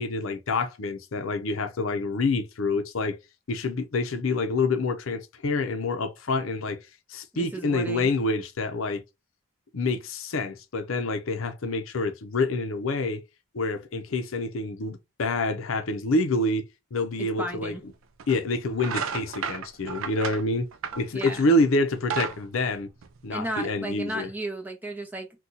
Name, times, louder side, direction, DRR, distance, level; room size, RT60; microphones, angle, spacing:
voice 1, 0.0-3.2 3.5-6.8 7.1-9.0 9.7-13.2 13.5-17.7 18.3-20.7 21.0-22.9 23.2-24.3, left 2 dB, 75° left, 0.6 m, -27 dB
voice 2, 7.3-8.1 17.2-17.8 21.1-21.4 23.3-25.4, right 1 dB, 10° right, 0.6 m, -34 dB
sound 1, 17.4-17.5 18.2-18.4 18.7-21.5 21.9-23.5, right 6 dB, 75° right, 0.4 m, -33 dB
2.8 x 2.3 x 3.7 m
head